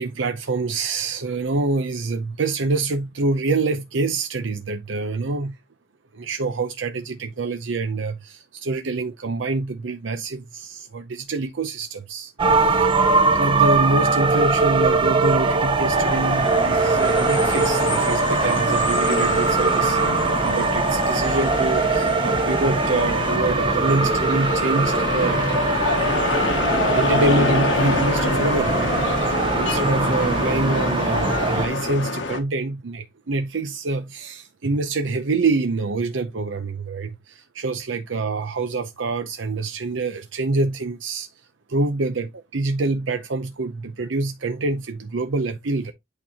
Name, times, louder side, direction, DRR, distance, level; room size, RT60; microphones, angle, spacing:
voice 1, 0.0-5.6 6.1-12.9 13.3-20.0 20.4-25.4 26.9-41.3 41.7-45.9, right 3 dB, 85° right, 0.6 m, -26 dB
sound 1, 12.4-31.7, right 3 dB, 25° right, 0.8 m, -21 dB
sound 2, 15.9-32.4, left 3 dB, 80° left, 1.2 m, -27 dB
8.7 x 4.4 x 2.8 m
head